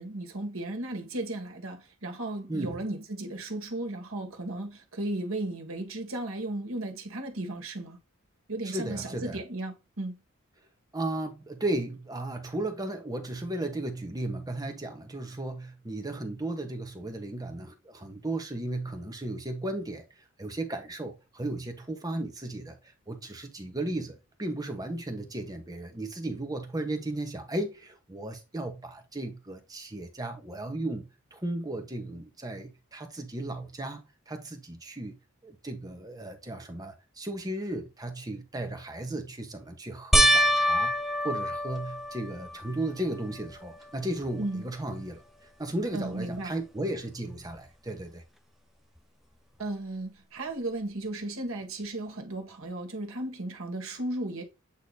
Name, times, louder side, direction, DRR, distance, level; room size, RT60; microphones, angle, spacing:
voice 1, 0.0-8.0 8.5-10.1 44.4-44.6 45.9-46.5 49.6-54.4, right 2 dB, 70° right, 1.7 m, -35 dB
voice 2, 8.6-9.4 10.9-35.2 35.4-40.9 41.2-45.2 45.6-48.2, right 1 dB, 20° right, 1.1 m, -35 dB
sound 1, 40.1-42.7 43.3-43.9 44.2-44.3 47.6-47.7, equal, ahead, 0.5 m, -25 dB
8.4 x 2.9 x 4.0 m
head